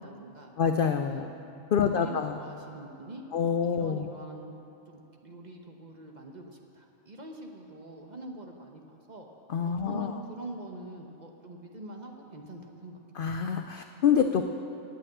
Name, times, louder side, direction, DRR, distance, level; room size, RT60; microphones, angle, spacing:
voice 1, 0.0-0.5 1.0-1.3 1.7-4.5 4.9-9.3 9.6-13.0, right 1 dB, 35° right, 2 dB, 0.9 m, -44 dB
voice 2, 0.6-1.3 1.7-2.4 3.3-4.1 9.5-10.1 13.2-14.4, left 7 dB, 75° left, 6 dB, 0.5 m, -26 dB
9.1 x 8.4 x 8.7 m, 3.0 s
omnidirectional pair, 1.4 m